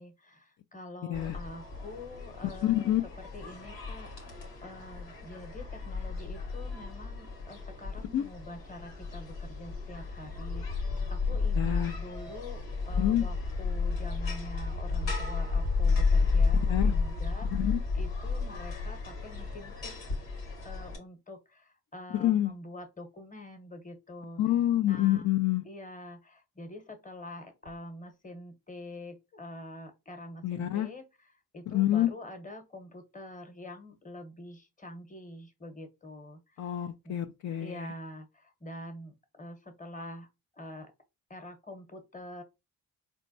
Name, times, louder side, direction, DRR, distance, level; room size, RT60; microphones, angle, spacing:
voice 1, 0.0-19.9 20.6-24.4 24.8-25.3 25.6-36.7 37.0-37.2 37.6-40.3 40.5-40.9 41.3-42.4, left 1 dB, 20° left, 1.0 m, -46 dB
sound 1, 1.1-21.0, left 4 dB, 85° left, 1.2 m, -32 dB
voice 2, 2.6-3.0 8.1-8.3 11.6-12.0 13.0-13.2 16.7-16.9 17.5-17.8 22.1-22.5 24.4-25.6 30.4-30.9 31.7-32.1 36.6-37.9, left 13 dB, 40° left, 0.5 m, -27 dB
4.3 x 2.2 x 2.6 m
hypercardioid pair, 50°, 44 cm